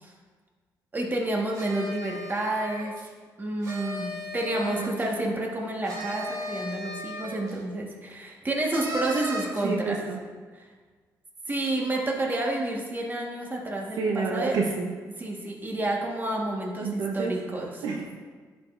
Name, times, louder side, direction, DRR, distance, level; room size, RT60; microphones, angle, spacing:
voice 1, 0.9-2.9 3.4-10.1 10.5-10.7 11.5-14.6 15.2-17.8, right 1 dB, 25° right, -1 dB, 1.4 m, -30 dB
sound 1, 1.5-3.1 3.6-5.1 5.9-7.6 8.7-9.7, equal, 55° right, 1.6 m, -36 dB
voice 2, 9.6-10.2 14.0-14.9 16.8-17.3 17.8-18.1, right 4 dB, 75° right, 0 dB, 0.7 m, -29 dB
11.0 x 5.0 x 2.5 m, 1.5 s
cardioid pair, 85°, 7 cm